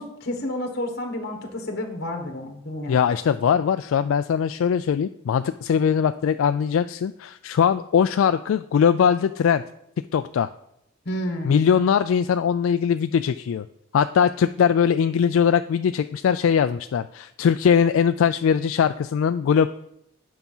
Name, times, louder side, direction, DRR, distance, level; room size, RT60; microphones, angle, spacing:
voice 1, 0.0-3.0 11.0-11.6, left 1 dB, 50° left, 2 dB, 1.4 m, -30 dB
voice 2, 2.9-9.6 10.1-10.5 11.4-13.7 13.9-19.7, left 7 dB, 75° left, 10 dB, 0.3 m, -21 dB
9.4 x 5.7 x 5.5 m, 0.76 s
head